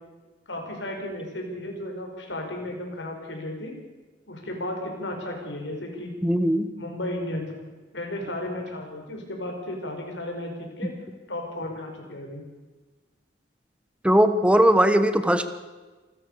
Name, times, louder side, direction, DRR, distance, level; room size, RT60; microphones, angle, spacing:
voice 1, 0.5-3.7 4.3-6.1 6.8-7.5 7.9-10.9 11.3-12.4, left 1 dB, 75° left, 2 dB, 5.5 m, -34 dB
voice 2, 6.2-6.7 14.0-15.5, equal, 5° right, 10 dB, 1.3 m, -19 dB
27.5 x 13.5 x 6.9 m, 1.3 s
head